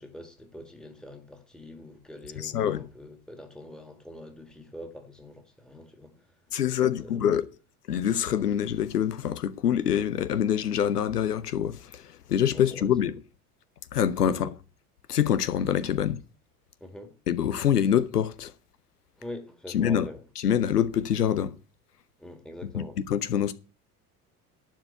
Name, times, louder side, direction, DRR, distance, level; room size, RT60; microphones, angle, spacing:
voice 1, 0.0-6.3 6.8-7.2 12.5-12.9 14.3-14.5 16.8-17.2 19.2-20.3 22.2-23.0, left 1 dB, ahead, 2.1 m, -44 dB
voice 2, 2.4-2.9 6.5-7.5 7.9-12.0 12.3-13.1 13.9-14.5 15.1-16.2 17.3-18.5 19.7-20.1 20.4-21.5 22.7-23.5, left 9 dB, 75° left, 1.0 m, -25 dB
11.5 x 4.7 x 8.0 m
figure-of-eight pair, 65°, 46 cm